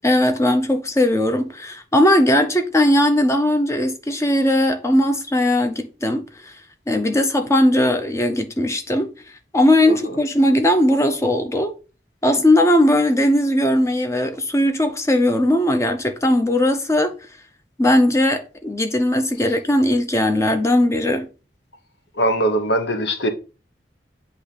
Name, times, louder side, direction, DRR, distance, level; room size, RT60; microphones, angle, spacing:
voice 1, 0.0-6.2 6.9-9.1 9.5-11.7 12.2-17.1 17.8-21.3, left 1 dB, 15° left, 0.6 m, -18 dB
voice 2, 22.2-23.3, right 1 dB, 85° left, 1.0 m, -20 dB
8.3 x 2.9 x 3.9 m
head